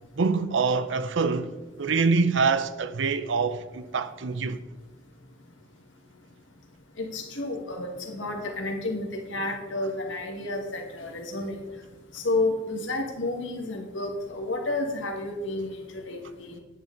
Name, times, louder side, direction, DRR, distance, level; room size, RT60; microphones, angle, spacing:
voice 1, 0.2-1.5 1.8-4.6, right 4 dB, 70° right, 0.6 m, -25 dB
voice 2, 7.0-11.5 12.1-16.6, left 2 dB, 80° left, 1.8 m, -31 dB
10.0 x 9.0 x 3.9 m
head